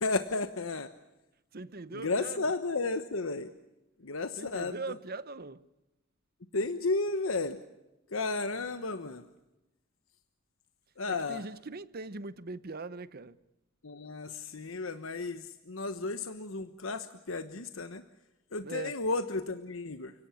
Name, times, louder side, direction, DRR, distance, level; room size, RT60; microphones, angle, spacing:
voice 1, 0.0-0.9 1.9-3.5 4.0-4.8 6.5-7.6 8.1-9.2 11.0-11.4 13.8-18.0 18.5-20.1, left 3 dB, 90° left, 1.2 m, -33 dB
voice 2, 1.5-2.5 4.4-5.6 11.1-13.4 18.6-19.0, right 3 dB, 50° right, 1.0 m, -41 dB
30.0 x 18.0 x 8.5 m
head